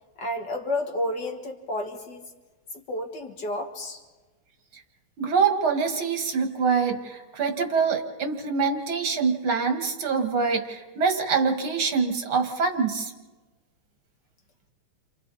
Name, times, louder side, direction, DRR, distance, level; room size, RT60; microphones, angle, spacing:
voice 1, 0.2-2.2 2.9-4.0, left 1 dB, 55° left, 3 dB, 2.5 m, -31 dB
voice 2, 5.2-13.1, right 5 dB, 75° right, 4 dB, 2.7 m, -25 dB
30.0 x 27.0 x 4.2 m, 1.2 s
omnidirectional pair, 2.3 m